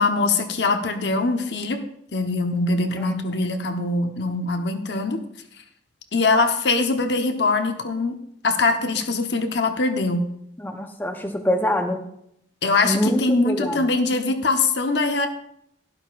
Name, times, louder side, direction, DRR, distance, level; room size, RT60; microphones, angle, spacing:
voice 1, 0.0-1.8 2.1-5.2 6.1-8.2 8.4-10.3 12.6-15.3, left 3 dB, 70° left, 5 dB, 1.0 m, -22 dB
voice 2, 10.6-12.0 12.8-13.8, left 1 dB, 10° left, 5 dB, 0.8 m, -24 dB
11.5 x 11.5 x 2.5 m, 0.73 s
head